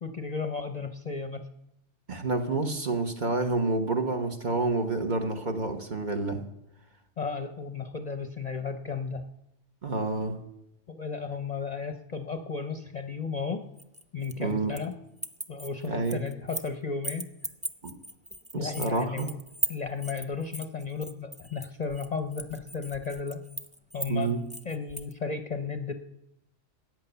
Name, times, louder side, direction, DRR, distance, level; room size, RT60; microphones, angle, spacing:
voice 1, 0.0-1.5 7.2-9.2 10.9-13.6 14.1-14.9 15.5-17.3 18.5-19.4 19.7-23.4 23.9-24.3 24.6-25.9, left 5 dB, 40° left, 0.8 m, -34 dB
voice 2, 2.1-6.4 9.8-10.4 14.4-14.8 15.8-16.2 17.8-18.0 18.5-19.3 24.1-24.4, right 3 dB, 40° right, 1.3 m, -29 dB
sound 1, 13.8-14.9 15.2-16.7 17.0-25.1, right 1 dB, 10° right, 0.5 m, -37 dB
14.5 x 9.2 x 6.9 m
omnidirectional pair, 1.3 m